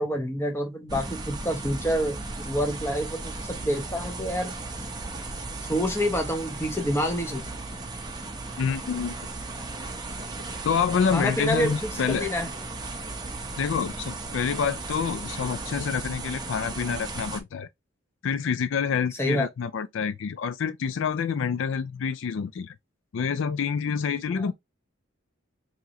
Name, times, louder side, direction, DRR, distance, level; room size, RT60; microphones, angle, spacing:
voice 1, 0.0-2.2 2.5-4.5 5.7-7.5 11.1-12.5 19.2-19.5, equal, 10° left, 0.8 m, -27 dB
sound 1, 0.9-17.4, right 3 dB, 20° right, 0.7 m, -36 dB
voice 2, 8.6-9.1 10.6-12.3 13.6-17.7 18.2-22.7 23.1-24.5, left 6 dB, 65° left, 0.3 m, -27 dB
4.7 x 3.0 x 2.5 m
head